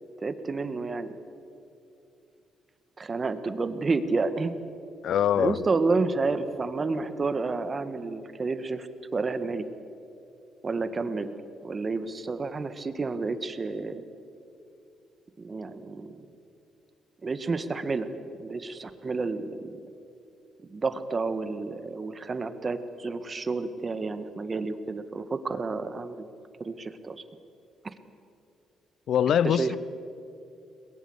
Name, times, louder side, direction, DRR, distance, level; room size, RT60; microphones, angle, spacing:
voice 1, 0.2-1.1 3.0-4.5 5.4-8.9 9.1-9.7 10.6-11.3 11.6-14.0 15.4-16.2 17.2-18.1 18.4-19.8 20.7-26.3 26.6-27.2 29.3-29.8, right 3 dB, 40° right, 11 dB, 1.7 m, -30 dB
voice 2, 5.0-5.6 29.1-29.8, left 9 dB, 70° left, 20 dB, 0.6 m, -23 dB
22.0 x 21.0 x 8.1 m, 2.7 s
supercardioid pair, 60°, 0 cm